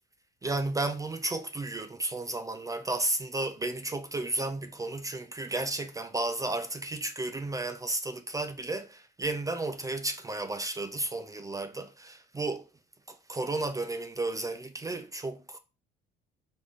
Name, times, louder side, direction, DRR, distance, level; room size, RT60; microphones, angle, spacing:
voice 1, 0.4-12.7 13.1-15.6, right 2 dB, 15° right, 0.4 m, -33 dB
4.0 x 3.5 x 3.1 m
cardioid pair, 100°, 20 cm